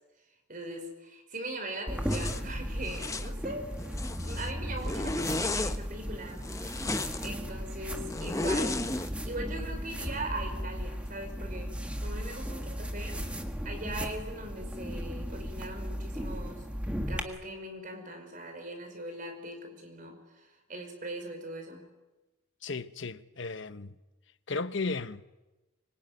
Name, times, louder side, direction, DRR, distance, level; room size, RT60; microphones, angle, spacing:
voice 1, 0.5-3.7 4.1-6.4 6.9-11.8 12.0-13.2 13.6-16.6 17.1-21.9, right 1 dB, 40° right, 5.4 m, -40 dB
sound 1, 1.9-17.2, equal, 5° right, 1.7 m, -36 dB
Zipper (clothing), 2.1-2.4 2.9-3.3 3.8-4.5 4.8-5.8 6.4-7.3 8.1-9.1, left 2 dB, 15° left, 0.9 m, -33 dB
voice 2, 22.6-24.0 24.5-25.2, left 3 dB, 60° left, 1.0 m, -35 dB
25.0 x 23.5 x 9.6 m
head